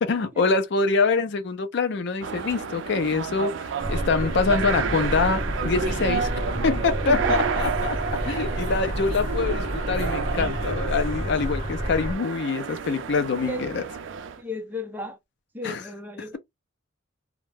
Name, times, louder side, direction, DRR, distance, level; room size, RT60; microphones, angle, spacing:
voice 1, 0.0-6.3 6.6-8.0 8.3-13.8 15.6-15.8, left 4 dB, 55° left, 0.4 m, -25 dB
sound 1, 2.2-14.4, right 6 dB, 65° right, 0.4 m, -30 dB
sound 2, 3.8-12.2, equal, 35° left, 0.8 m, -30 dB
voice 2, 7.1-7.5 8.1-8.6 13.4-13.7 14.4-15.2 15.5-16.4, left 1 dB, 10° right, 0.5 m, -35 dB
2.3 x 2.1 x 3.3 m
head